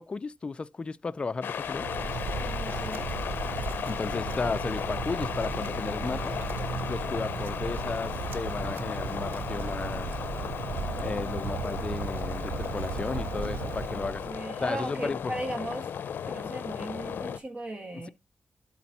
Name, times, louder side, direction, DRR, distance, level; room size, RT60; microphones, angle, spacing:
voice 1, 0.0-1.9 3.9-6.3 6.9-10.1 11.0-14.3 14.6-15.3 17.9-18.1, left 4 dB, 30° left, 0.4 m, -34 dB
sound 1, 1.4-17.4, left 8 dB, 85° left, 0.5 m, -35 dB
Wind, 1.6-14.4, right 5 dB, 90° right, 0.9 m, -35 dB
voice 2, 2.4-3.1 12.9-13.5 13.9-15.9 16.2-18.1, right 1 dB, 40° right, 1.9 m, -38 dB
12.5 x 4.2 x 4.2 m
wide cardioid pair, 115°, 3 cm